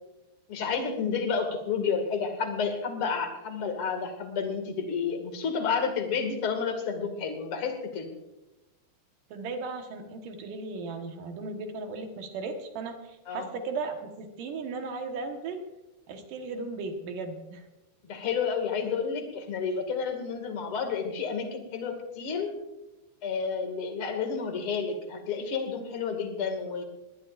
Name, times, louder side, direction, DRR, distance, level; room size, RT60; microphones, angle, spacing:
voice 1, 0.5-8.1 13.3-13.5 18.0-22.5 23.2-26.8, left 5 dB, 50° left, 5 dB, 1.7 m, -30 dB
voice 2, 9.3-15.6 16.1-17.6, right 3 dB, 70° right, 4 dB, 2.1 m, -36 dB
20.5 x 19.5 x 2.5 m, 1.0 s
omnidirectional pair, 5.7 m